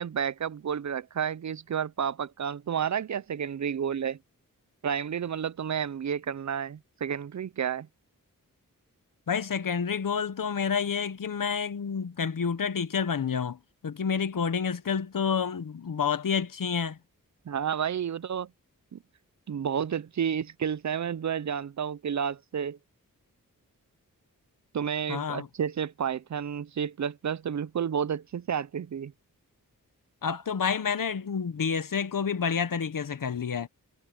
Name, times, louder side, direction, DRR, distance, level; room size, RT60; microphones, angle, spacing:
voice 1, 0.0-4.2 4.8-7.9 17.5-18.5 18.9-19.0 19.5-22.8 24.7-29.1, right 8 dB, 55° right, 0.5 m, -31 dB
voice 2, 9.3-17.0 25.1-25.5 30.2-33.7, left 6 dB, 70° left, 1.1 m, -29 dB
wide cardioid pair, 95°, 34 cm